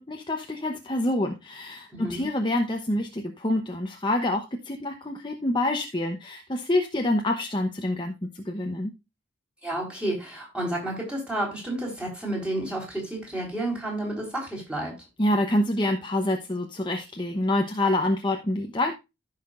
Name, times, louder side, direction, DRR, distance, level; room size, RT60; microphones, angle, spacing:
voice 1, 0.0-8.9 15.2-18.9, left 1 dB, 25° left, 0.8 m, -27 dB
voice 2, 1.9-2.3 9.6-15.0, right 1 dB, 5° right, 3.7 m, -31 dB
15.0 x 5.8 x 2.5 m
head